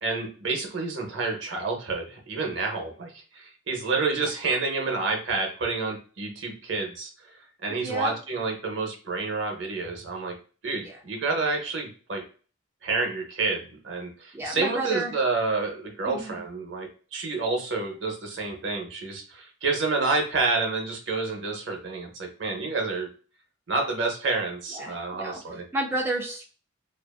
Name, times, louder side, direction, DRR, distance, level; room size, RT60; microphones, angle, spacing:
voice 1, 0.0-10.3 10.6-12.2 12.8-23.1 23.7-25.7, right 3 dB, 60° right, 1 dB, 0.7 m, -29 dB
voice 2, 7.8-8.1 10.8-11.0 14.3-15.1 16.1-16.3 24.7-25.4 25.7-26.4, right 2 dB, 10° right, -2 dB, 0.3 m, -31 dB
2.5 x 2.4 x 2.2 m, 0.38 s
head